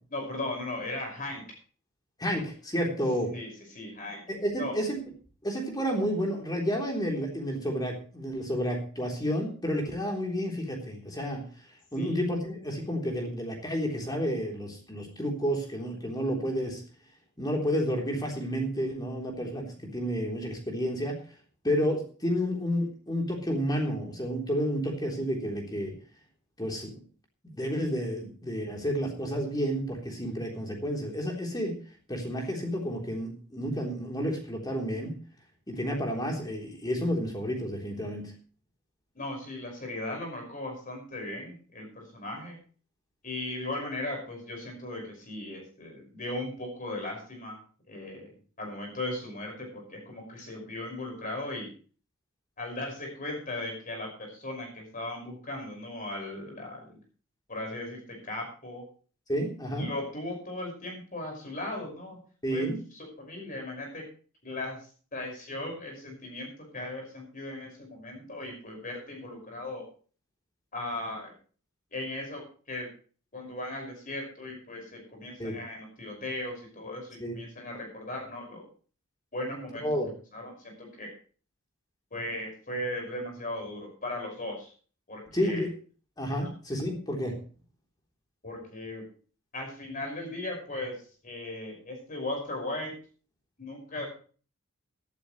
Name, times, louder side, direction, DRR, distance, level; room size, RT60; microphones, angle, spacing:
voice 1, 0.1-1.4 3.2-4.2 4.6-4.8 12.0-12.1 39.1-42.6 43.2-48.3 48.6-51.7 52.6-57.0 57.5-58.9 59.8-62.2 62.5-62.7 62.9-64.0 64.4-69.8 70.7-71.3 71.9-72.9 73.3-78.7 79.3-79.9 80.3-81.1 82.1-84.7 85.1-85.7 86.4-86.5 88.4-89.0 89.5-92.9 93.6-94.1, left 1 dB, 40° left, 1 dB, 5.7 m, -37 dB
voice 2, 2.2-3.3 4.3-5.0 5.4-11.4 11.9-16.8 17.4-21.2 21.6-25.9 26.6-26.9 27.4-31.8 32.1-35.2 35.7-38.3 59.3-59.9 62.4-62.8 75.4-75.6 77.2-77.4 79.8-80.1 85.3-85.7 86.2-87.3, equal, 20° left, 0 dB, 3.5 m, -30 dB
17.5 x 12.5 x 3.2 m, 0.41 s
head